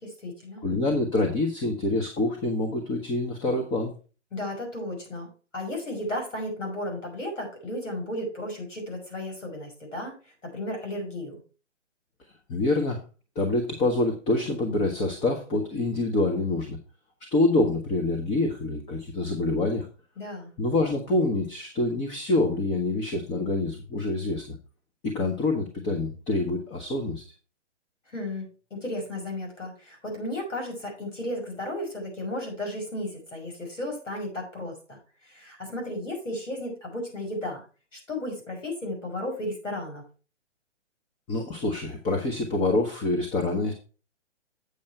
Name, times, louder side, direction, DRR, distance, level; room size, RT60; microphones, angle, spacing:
voice 1, 0.0-0.6 4.3-11.4 20.2-20.5 28.1-37.7 37.9-40.0, left 1 dB, 90° left, 1 dB, 5.6 m, -34 dB
voice 2, 0.6-3.9 12.5-13.0 13.4-16.8 17.3-19.9 20.6-24.6 25.0-27.2 41.3-43.7, left 2 dB, 15° left, 2 dB, 0.9 m, -26 dB
8.0 x 7.0 x 4.5 m, 0.36 s
hypercardioid pair, 140°, 36 cm